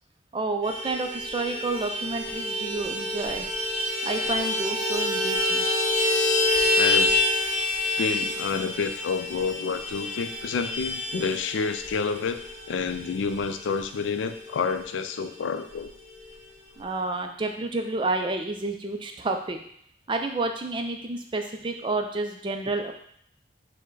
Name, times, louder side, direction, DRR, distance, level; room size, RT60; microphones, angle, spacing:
voice 1, 0.3-3.5 4.0-5.7 16.8-19.6 20.1-22.9, right 2 dB, 25° right, 5 dB, 0.3 m, -30 dB
Vehicle horn car horn honking, 0.6-14.5 14.8-14.9 15.2-15.4 15.7-16.4, left 2 dB, ahead, 1.7 m, -27 dB
voice 2, 6.8-7.2 8.0-12.4 12.7-15.9, left 5 dB, 85° left, 9 dB, 0.3 m, -29 dB
4.5 x 2.1 x 4.6 m, 0.66 s
head